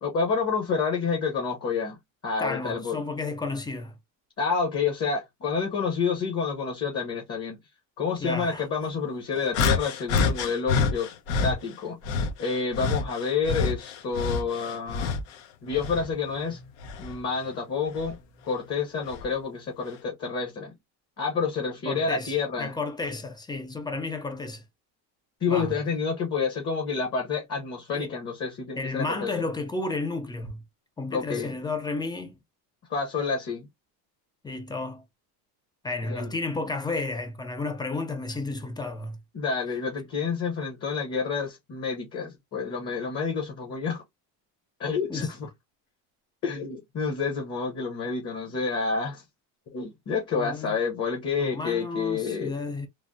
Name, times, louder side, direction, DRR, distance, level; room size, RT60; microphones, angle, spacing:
voice 1, 0.0-2.0 2.2-3.0 4.4-7.6 8.0-11.1 11.4-15.2 15.6-16.6 17.0-20.7 21.2-22.7 25.4-29.3 31.1-31.5 32.9-33.7 36.1-36.3 39.3-44.0 44.8-45.5 46.4-49.2 49.7-52.5, left 5 dB, 35° left, 0.9 m, -29 dB
voice 2, 2.4-3.9 8.2-8.7 21.9-24.6 25.5-25.8 27.9-28.1 28.8-30.6 31.0-32.4 34.4-35.0 35.8-39.2 45.1-45.3 50.3-50.8 51.4-52.9, left 3 dB, 10° left, 0.3 m, -32 dB
sound 1, 9.5-11.6 12.0-15.3 15.7-17.2 17.9-18.1 19.1-19.2, left 5 dB, 85° left, 0.9 m, -27 dB
3.2 x 2.0 x 2.5 m
cardioid pair, 135°, 44 cm